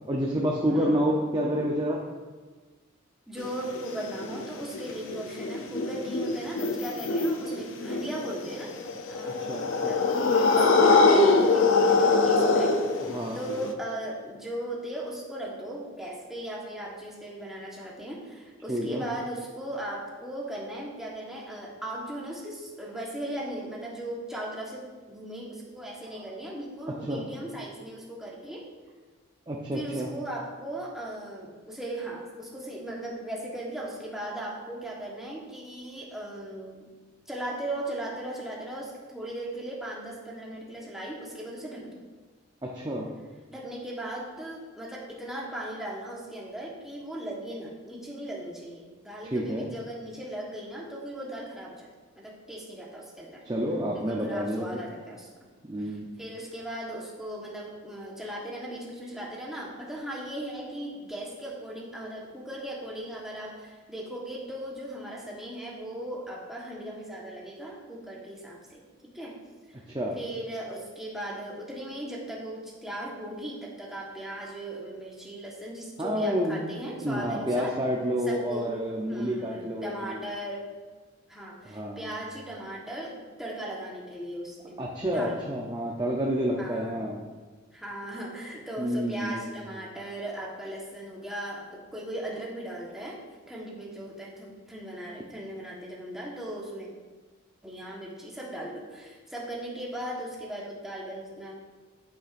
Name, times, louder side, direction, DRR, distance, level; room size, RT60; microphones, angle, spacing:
voice 1, 0.1-2.0 9.3-9.9 13.0-13.4 18.7-19.0 26.1-26.2 26.9-27.2 29.5-30.1 42.6-43.1 49.3-49.7 53.4-54.8 55.7-56.1 69.9-70.2 76.0-80.2 81.7-82.2 84.8-87.2 88.8-89.5, equal, 20° right, -2 dB, 0.6 m, -29 dB
voice 2, 0.7-1.1 3.3-8.7 9.1-10.1 10.3-12.8 13.0-28.7 29.7-36.9 37.3-42.0 43.5-51.9 52.2-53.4 53.9-55.3 55.8-69.4 69.7-69.8 70.1-77.8 78.3-78.8 79.1-80.7 81.3-84.8 85.1-85.6 86.6-87.0 87.7-93.2 93.5-96.9 97.6-101.5, right 1 dB, ahead, -4 dB, 1.2 m, -38 dB
sound 1, 3.4-13.7, left 3 dB, 70° left, 0.6 m, -23 dB
8.8 x 8.4 x 2.6 m, 1.3 s
head